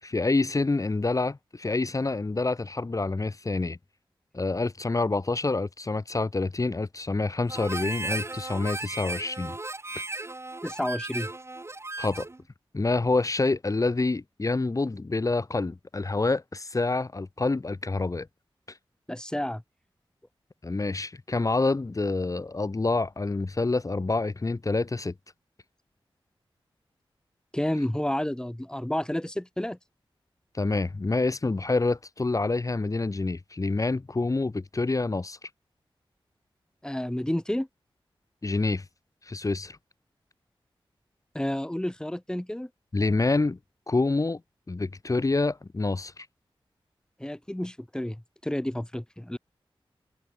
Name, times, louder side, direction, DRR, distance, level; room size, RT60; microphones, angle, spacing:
voice 1, 0.0-3.8 4.3-9.5 9.9-10.0 12.0-12.3 12.7-18.3 20.6-25.1 30.5-35.5 38.4-38.8 39.2-39.8 42.9-43.6 43.9-44.4 44.7-46.3, left 3 dB, 35° left, 6.7 m, -27 dB
Harmonica, 7.5-12.4, right 2 dB, 30° right, 6.4 m, -36 dB
voice 2, 10.6-11.3 19.1-19.6 27.5-29.8 36.8-37.7 41.3-42.7 47.2-49.4, left 1 dB, 10° left, 7.6 m, -30 dB
wide cardioid pair, 115°, 9 cm